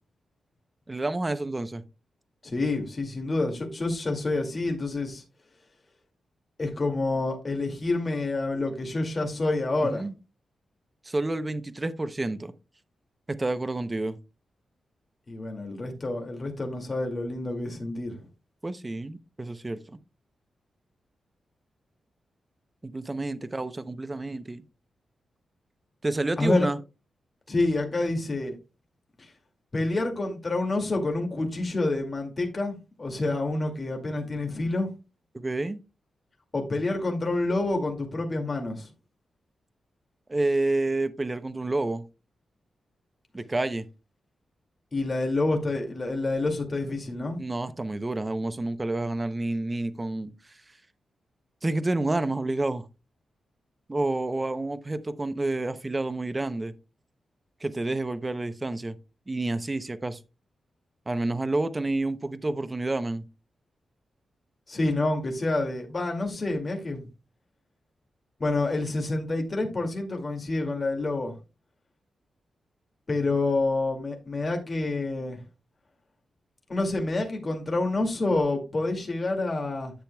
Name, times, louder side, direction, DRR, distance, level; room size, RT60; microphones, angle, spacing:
voice 1, 0.9-1.8 9.8-10.1 11.0-12.5 13.3-14.2 18.6-20.0 22.8-24.6 26.0-26.8 35.3-35.8 40.3-42.0 43.3-43.9 47.4-50.3 51.6-52.9 53.9-56.7 57.6-59.0 59.3-60.2 61.1-63.3, right 2 dB, 20° right, 0.6 m, -29 dB
voice 2, 2.4-5.2 6.6-10.0 15.3-18.3 26.4-26.7 27.5-28.6 29.2-29.3 29.7-34.9 36.5-38.9 44.9-47.4 64.7-67.1 68.4-71.3 73.1-75.4 76.7-79.9, left 2 dB, 30° left, 2.2 m, -28 dB
10.0 x 7.6 x 2.2 m
wide cardioid pair, 140°, 0 cm